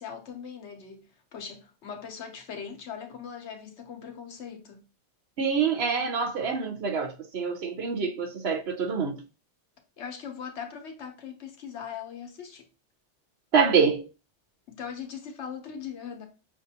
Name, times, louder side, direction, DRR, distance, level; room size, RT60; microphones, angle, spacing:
voice 1, 0.0-4.9 10.0-12.7 14.7-16.3, left 7 dB, 70° left, 1.1 m, -40 dB
voice 2, 5.4-9.2 13.5-14.1, right 5 dB, 65° right, 1.0 m, -26 dB
5.8 x 2.5 x 2.7 m
omnidirectional pair, 1.2 m